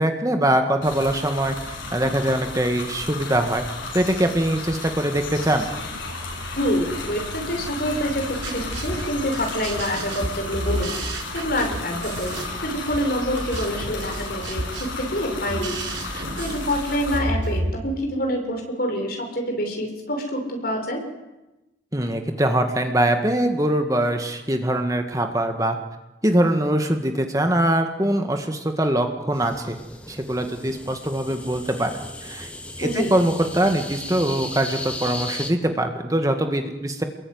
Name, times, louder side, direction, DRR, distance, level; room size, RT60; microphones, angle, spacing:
voice 1, 0.0-3.6 3.9-5.7 21.9-25.8 26.2-29.8 30.1-31.9 32.2-32.5 32.8-37.0, right 1 dB, 15° right, 5 dB, 1.8 m, -22 dB
sound 1, 0.8-17.2, left 3 dB, 75° left, 7.9 m, -33 dB
voice 2, 6.5-15.8 16.0-21.0 32.8-33.1, equal, 50° left, 3 dB, 6.2 m, -27 dB
sound 2, 8.1-17.7, right 1 dB, 90° right, 7.1 m, -31 dB
sound 3, 29.3-35.5, left 1 dB, 5° left, 2.2 m, -36 dB
28.5 x 22.0 x 9.6 m, 1.0 s
head